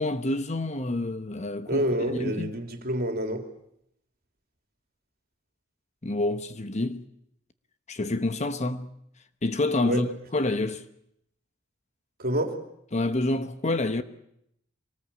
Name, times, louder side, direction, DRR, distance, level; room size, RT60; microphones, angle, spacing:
voice 1, 0.0-2.6 6.0-7.1 7.9-8.9 9.4-10.9 12.9-14.0, left 2 dB, 35° left, 1.1 m, -28 dB
voice 2, 1.7-3.5 9.8-10.0 12.2-12.6, equal, 50° right, 3.0 m, -28 dB
25.0 x 19.0 x 8.4 m
head